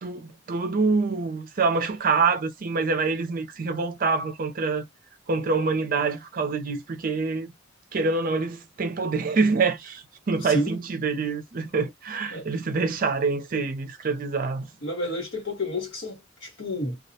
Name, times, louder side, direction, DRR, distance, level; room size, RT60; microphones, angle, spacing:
voice 1, 0.0-4.9 5.3-7.5 7.9-14.7, right 4 dB, 45° right, 0.5 m, -26 dB
voice 2, 10.4-10.8 12.3-12.5 13.5-13.6 14.8-17.0, left 1 dB, 60° left, 1.3 m, -30 dB
2.3 x 2.1 x 2.7 m
head